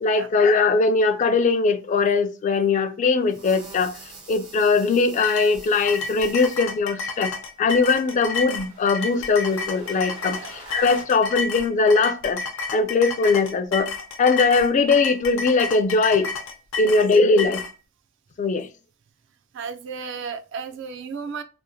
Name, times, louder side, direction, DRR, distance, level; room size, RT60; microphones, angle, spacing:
voice 1, 0.0-4.0 4.3-7.3 7.6-12.4 12.7-16.3 16.8-17.6 18.4-18.7, left 4 dB, 35° left, 0.3 m, -20 dB
sound 1, 3.3-6.6 7.7-11.0, right 3 dB, 85° right, 1.1 m, -45 dB
sound 2, 5.2-17.7, left 4 dB, 80° left, 0.6 m, -31 dB
voice 2, 19.5-21.4, right 5 dB, 60° right, 0.4 m, -34 dB
2.8 x 2.1 x 2.6 m
head